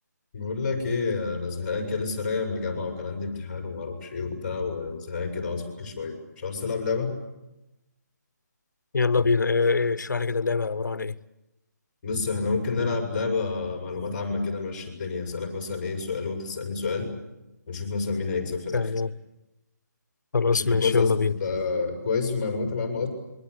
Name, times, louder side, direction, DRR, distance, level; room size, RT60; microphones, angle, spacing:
voice 1, 0.3-7.1 12.0-17.1 17.7-18.9 20.4-23.1, left 4 dB, 30° left, 6.4 m, -29 dB
voice 2, 8.9-11.1 18.7-19.1 20.3-21.3, left 4 dB, 80° left, 1.1 m, -23 dB
27.0 x 23.5 x 8.2 m
hypercardioid pair, 165°, 10 cm